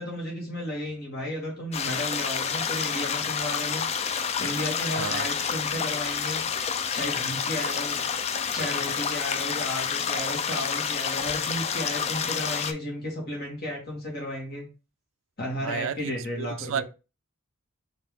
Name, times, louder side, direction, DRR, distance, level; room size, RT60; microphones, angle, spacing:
voice 1, 0.0-3.8 4.4-6.4 6.9-8.0 8.5-14.7 15.4-16.8, left 1 dB, 50° left, 2.0 m, -33 dB
sound 1, 1.7-12.7, left 7 dB, 30° left, 0.3 m, -29 dB
voice 2, 5.0-5.3 15.6-16.8, right 7 dB, 70° right, 0.3 m, -32 dB
4.4 x 3.0 x 3.4 m
head